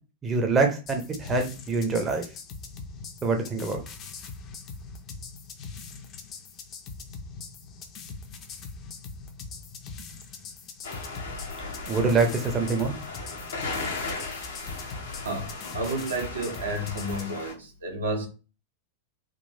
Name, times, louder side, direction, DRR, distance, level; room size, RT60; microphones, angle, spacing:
voice 1, 0.2-2.2 3.2-3.8 11.9-12.9, right 4 dB, 20° right, 0.7 m, -25 dB
sound 1, 0.9-17.3, left 4 dB, 35° left, 0.6 m, -42 dB
sound 2, 10.8-17.5, left 3 dB, 70° left, 0.7 m, -37 dB
voice 2, 15.2-18.3, right 1 dB, 70° right, 0.8 m, -31 dB
3.7 x 2.4 x 2.7 m
figure-of-eight pair, 90°, 0 cm